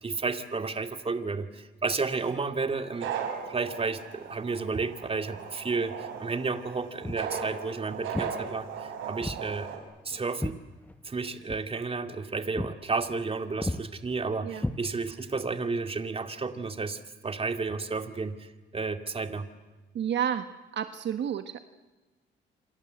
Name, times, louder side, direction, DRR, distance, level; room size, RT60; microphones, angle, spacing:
voice 1, 0.0-3.1 3.5-9.7 10.0-10.6 11.0-19.5, right 4 dB, 30° right, 8 dB, 2.3 m, -32 dB
sound 1, 2.9-9.8, right 7 dB, 90° right, 4.8 m, -37 dB
Walk footsteps, 7.0-7.3 8.1-8.4 9.2-9.5 9.8-11.2 11.5-11.7 12.1-12.3 12.6-12.8 13.1-13.3 13.6-13.8 14.6-15.3, left 1 dB, 10° left, 1.2 m, -34 dB
voice 2, 19.9-20.5 20.7-21.6, right 9 dB, 65° right, 9 dB, 1.3 m, -30 dB
27.5 x 26.0 x 8.0 m, 1.2 s
cardioid pair, 90°, 20 cm